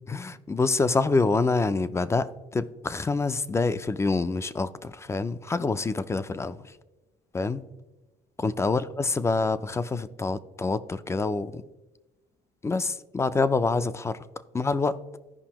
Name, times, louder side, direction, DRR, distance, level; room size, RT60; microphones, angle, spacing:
voice 1, 0.1-6.7 7.3-7.6 8.4-11.6 12.6-14.3 14.5-15.0, left 3 dB, 15° left, 0.3 m, -26 dB
14.5 x 5.2 x 2.9 m
cardioid pair, 110°, 17 cm